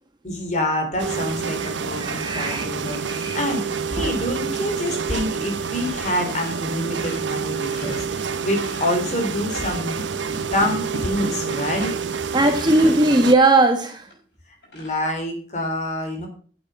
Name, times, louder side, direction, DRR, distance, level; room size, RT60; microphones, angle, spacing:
voice 1, 0.2-3.6 3.9-10.0 10.5-11.9 14.7-16.3, left 1 dB, 40° left, 3.6 m, -26 dB
sound 1, 1.0-13.3, right 5 dB, 90° right, 0.8 m, -28 dB
voice 2, 2.0-2.7 3.1-3.4 12.3-14.0, right 2 dB, 25° right, 1.3 m, -18 dB
sound 2, 5.2-5.4 5.7-6.0 6.3-9.1 9.5-12.1 12.5-13.0 13.6-13.7 14.1-14.2 14.6-14.9, left 1 dB, 60° left, 5.4 m, -38 dB
9.1 x 8.2 x 5.6 m
head